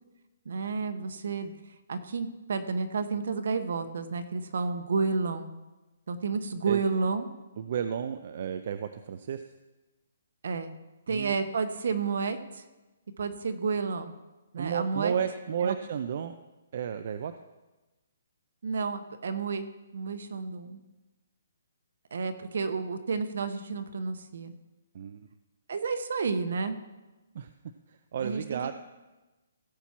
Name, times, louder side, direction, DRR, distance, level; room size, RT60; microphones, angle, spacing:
voice 1, 0.4-1.5 1.9-5.5 6.1-7.3 10.4-10.7 11.1-12.6 13.2-14.1 14.5-15.1 15.6-15.7 18.6-20.8 22.1-24.5 25.7-26.8 28.2-28.7, right 4 dB, 65° right, 10 dB, 1.1 m, -31 dB
voice 2, 7.6-9.5 11.1-11.3 14.5-16.4 16.7-17.3 24.9-25.3 27.3-27.5 27.9-28.7, right 8 dB, 45° right, 10 dB, 0.5 m, -32 dB
16.0 x 7.1 x 4.5 m, 1.1 s
hypercardioid pair, 170°, 0 cm